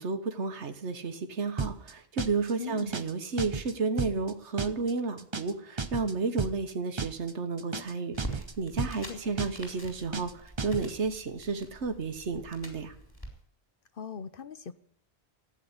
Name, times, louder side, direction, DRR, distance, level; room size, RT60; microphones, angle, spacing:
voice 1, 0.0-12.9, right 4 dB, 85° right, 7 dB, 1.6 m, -32 dB
sound 1, 1.6-1.9 2.2-2.5 2.8-3.1 3.4-3.7 4.0-4.3 4.6-4.9 5.2-5.5 5.8-6.1 6.4-6.7 7.0-7.3 7.6-8.5 8.8-9.1 9.4-9.7 10.0-10.3 10.6-10.9, right 4 dB, 30° right, 0.7 m, -34 dB
voice 2, 2.6-2.9 9.1-9.2 13.9-14.7, left 7 dB, 55° left, 13 dB, 1.0 m, -39 dB
sound 2, 8.1-13.3, right 1 dB, 20° left, 4.2 m, -45 dB
15.0 x 9.2 x 9.7 m, 0.67 s
omnidirectional pair, 1.1 m